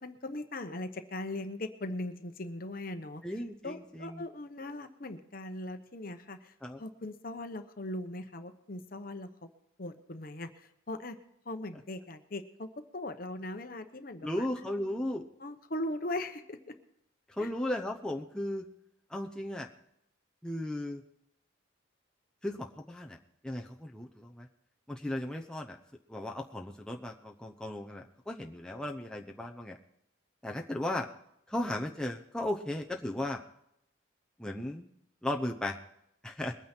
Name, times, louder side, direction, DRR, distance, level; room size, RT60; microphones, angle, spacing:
voice 1, 0.0-9.3 9.8-11.2 11.4-12.7 12.9-15.0 15.4-16.7 17.4-17.5, left 1 dB, 45° left, 8 dB, 1.0 m, -40 dB
voice 2, 3.2-4.2 6.6-6.8 14.2-15.2 17.3-18.7 19.1-19.7 20.4-21.0 22.4-23.2 23.4-24.5 24.9-25.8 26.1-29.8 30.4-31.1 31.5-33.4 34.4-34.9 35.2-35.8 36.2-36.5, left 1 dB, 5° left, 1 dB, 0.7 m, -36 dB
22.0 x 9.3 x 4.4 m, 0.76 s
head